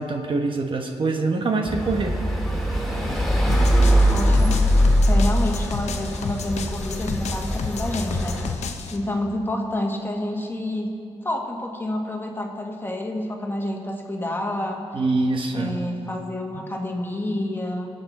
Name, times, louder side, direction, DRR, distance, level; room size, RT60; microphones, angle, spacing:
voice 1, 0.0-2.2 14.9-15.8, right 3 dB, 50° right, 3 dB, 1.1 m, -24 dB
sound 1, 1.7-8.5, equal, ahead, 2.3 m, -21 dB
sound 2, 3.5-9.0, left 6 dB, 80° left, 0.9 m, -33 dB
voice 2, 4.1-4.6 5.1-10.9 11.2-14.8 15.5-17.9, left 1 dB, 20° left, 1 dB, 1.6 m, -28 dB
21.5 x 8.0 x 4.2 m, 2.5 s
cardioid pair, 80°, 11 cm